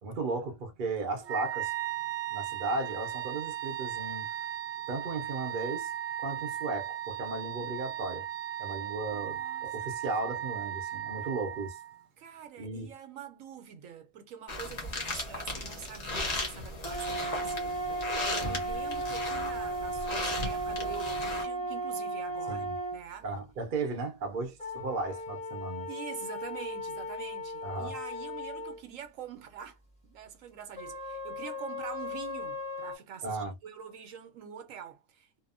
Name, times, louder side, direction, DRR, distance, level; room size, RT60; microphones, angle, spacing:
voice 1, 0.0-1.7 2.3-4.3 4.9-5.9 6.2-8.3 8.6-11.8 12.6-12.9 18.4-18.6 22.5-22.8 23.2-25.9 27.6-28.0 33.2-33.5, right 3 dB, 50° right, 0.6 m, -35 dB
Wind instrument woodwind instrument, 1.2-12.0, right 11 dB, 90° right, 0.4 m, -36 dB
voice 2, 9.1-10.1 10.6-11.1 12.2-23.3 25.9-29.8 30.0-35.4, right 8 dB, 75° right, 0.9 m, -45 dB
sound 1, 14.5-21.4, left 2 dB, 35° left, 0.8 m, -36 dB
sound 2, 16.8-23.0 24.6-28.8 30.7-33.0, right 1 dB, 5° left, 0.9 m, -36 dB
2.8 x 2.1 x 2.4 m
omnidirectional pair, 1.5 m